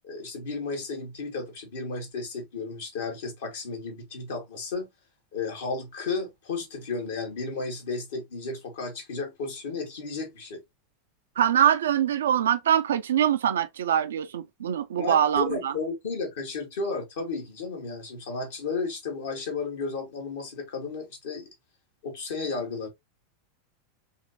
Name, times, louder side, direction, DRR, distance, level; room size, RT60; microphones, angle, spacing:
voice 1, 0.0-4.9 5.3-10.6 15.0-21.5 22.0-22.9, left 4 dB, 65° left, 2.3 m, -33 dB
voice 2, 11.4-15.7, right 9 dB, 70° right, 0.6 m, -23 dB
5.4 x 2.9 x 2.8 m
figure-of-eight pair, 85°, 0 cm